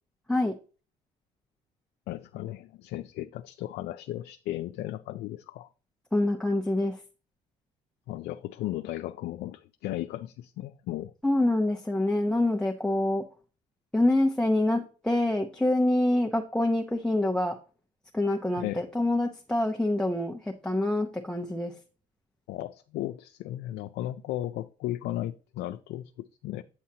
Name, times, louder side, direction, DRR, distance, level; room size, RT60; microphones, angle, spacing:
voice 1, 2.1-5.7 8.1-11.1 18.6-18.8 22.5-26.6, left 14 dB, 80° left, 8 dB, 0.5 m, -35 dB
voice 2, 6.1-7.0 11.2-13.2 13.9-17.6 18.1-21.7, left 1 dB, 5° left, 1 dB, 0.8 m, -26 dB
8.4 x 7.3 x 2.8 m, 0.35 s
cardioid pair, 110°, 17 cm